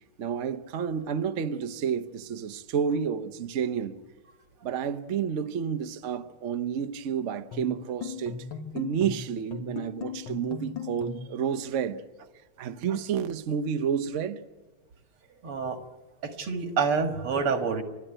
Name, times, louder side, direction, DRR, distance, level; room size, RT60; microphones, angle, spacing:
voice 1, 0.2-4.0 4.6-8.4 8.7-12.0 12.6-14.4, right 7 dB, 55° right, 0.9 m, -30 dB
sound 1, 7.5-11.4, left 6 dB, 70° left, 2.2 m, -38 dB
voice 2, 15.4-15.8 16.2-17.8, right 5 dB, 90° right, 2.7 m, -27 dB
30.0 x 12.5 x 9.1 m
omnidirectional pair, 2.3 m